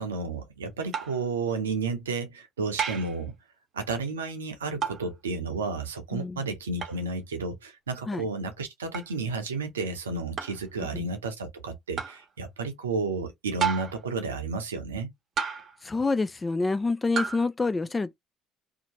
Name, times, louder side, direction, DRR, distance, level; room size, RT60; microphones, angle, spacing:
voice 1, 0.0-3.3 3.7-15.1, right 4 dB, 90° right, 0.6 m, -32 dB
sound 1, 0.9-1.3 2.8-3.2 4.8-5.1 6.8-7.0 8.9-9.1 10.4-10.6 12.0-12.2 13.6-14.1 15.4-15.8 17.2-17.5, right 7 dB, 50° right, 0.7 m, -31 dB
voice 2, 6.1-6.4 8.1-8.3 10.9-11.1 15.8-18.1, left 3 dB, 25° left, 0.5 m, -27 dB
2.8 x 2.2 x 2.8 m
hypercardioid pair, 55°, 0 cm